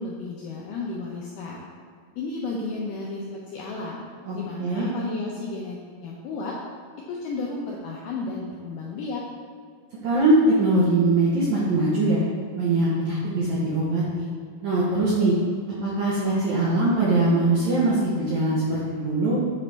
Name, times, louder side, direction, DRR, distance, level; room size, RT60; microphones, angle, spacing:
voice 1, 0.0-1.7 2.2-4.1 4.3-6.6 7.1-9.2, left 3 dB, 85° left, -3 dB, 1.9 m, -33 dB
voice 2, 4.3-4.9 10.0-12.2 12.5-14.3 14.6-15.3 15.8-19.4, right 2 dB, 75° right, -7 dB, 1.7 m, -22 dB
8.2 x 3.9 x 3.3 m, 2.1 s
omnidirectional pair, 4.4 m